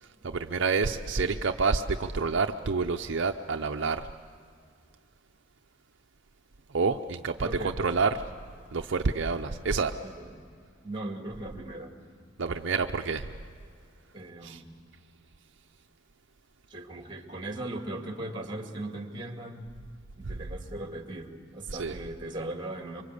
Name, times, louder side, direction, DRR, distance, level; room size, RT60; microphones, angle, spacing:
voice 1, 0.0-4.1 6.7-8.2 8.7-9.9 12.4-13.3 14.4-14.6 21.7-22.0, right 4 dB, 60° right, 5 dB, 0.6 m, -28 dB
voice 2, 7.4-8.0 10.0-10.4 10.8-11.9 14.1-14.8 16.7-19.7 20.2-23.0, right 1 dB, 25° right, 4 dB, 2.2 m, -38 dB
26.0 x 24.0 x 8.3 m, 2.2 s
head